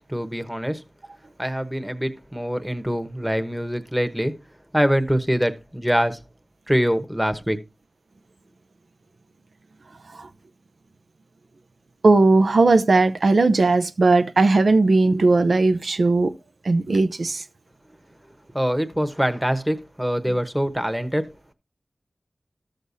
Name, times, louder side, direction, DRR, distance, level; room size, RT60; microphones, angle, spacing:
voice 1, 0.1-0.8 1.4-4.3 4.7-6.2 6.7-7.6 18.5-21.5, equal, 5° right, 1.1 m, -24 dB
voice 2, 12.0-16.3 16.6-17.4, right 3 dB, 80° right, 0.6 m, -18 dB
13.5 x 6.6 x 2.7 m
wide cardioid pair, 65°, 0 cm